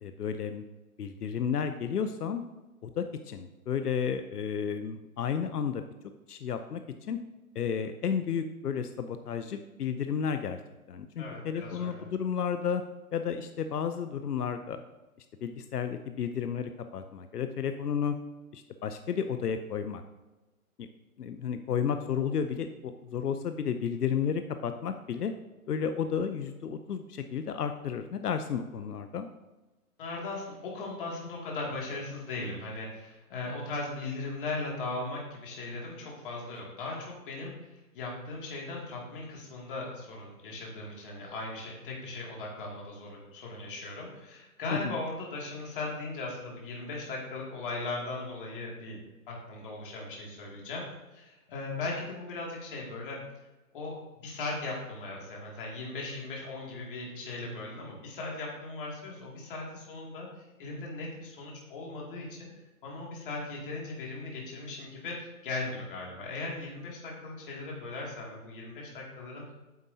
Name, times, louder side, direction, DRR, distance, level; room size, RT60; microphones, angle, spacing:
voice 1, 0.0-0.6 1.0-2.4 2.8-5.8 6.3-6.8 7.1-7.2 7.5-10.6 10.9-12.8 13.1-14.8 15.4-18.1 18.5-20.0 20.8-20.9 21.2-25.3 25.7-29.3 44.7-45.0, left 7 dB, 90° left, 8 dB, 0.8 m, -32 dB
voice 2, 11.2-12.1 30.0-49.0 49.3-50.8 51.1-53.2 53.7-54.0 54.2-60.3 60.6-62.5 62.8-69.5, left 2 dB, 35° left, -3 dB, 2.5 m, -38 dB
9.5 x 7.5 x 2.8 m, 1.1 s
hypercardioid pair, 160°, 45 cm